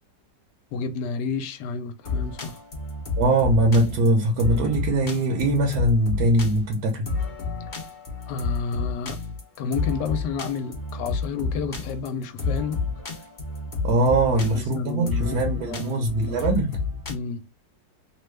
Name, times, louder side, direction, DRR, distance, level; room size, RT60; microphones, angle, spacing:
voice 1, 0.7-2.6 8.3-9.2 9.6-12.8 14.3-16.5 17.1-17.4, left 5 dB, 80° left, 1.2 m, -31 dB
sound 1, 2.0-17.1, left 4 dB, 60° left, 0.5 m, -30 dB
voice 2, 3.2-7.0 13.8-16.8, right 1 dB, 70° right, 1.2 m, -21 dB
3.1 x 2.2 x 3.1 m
omnidirectional pair, 1.9 m